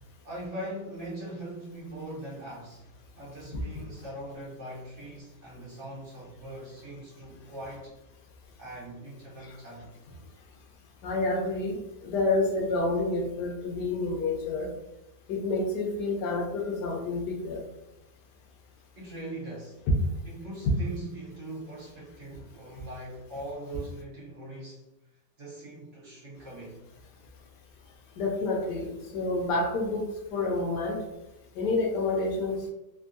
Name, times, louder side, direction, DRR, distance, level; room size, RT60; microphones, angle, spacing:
voice 1, 0.2-2.9 3.1-8.0 8.6-10.0 18.9-19.8 20.3-24.9 25.4-26.8, right 1 dB, 50° right, 1.1 m, -41 dB
voice 2, 3.5-3.8 11.0-14.7 15.3-17.6 19.9-20.0 28.2-30.1 30.3-31.0 31.6-32.7, left 2 dB, 80° left, 1.3 m, -28 dB
3.5 x 2.2 x 2.6 m
omnidirectional pair, 1.8 m